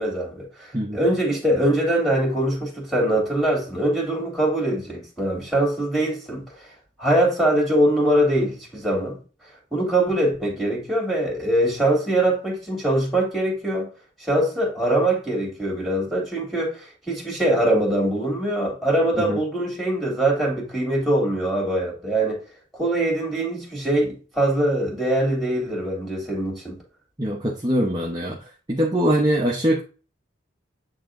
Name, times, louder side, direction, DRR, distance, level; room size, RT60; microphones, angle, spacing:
voice 1, 0.0-6.5 7.0-9.2 9.7-13.9 14.2-22.4 22.7-26.8, right 1 dB, ahead, 2.9 m, -23 dB
voice 2, 27.2-28.4 28.7-29.8, equal, 20° right, 1.0 m, -22 dB
8.9 x 3.6 x 3.8 m
head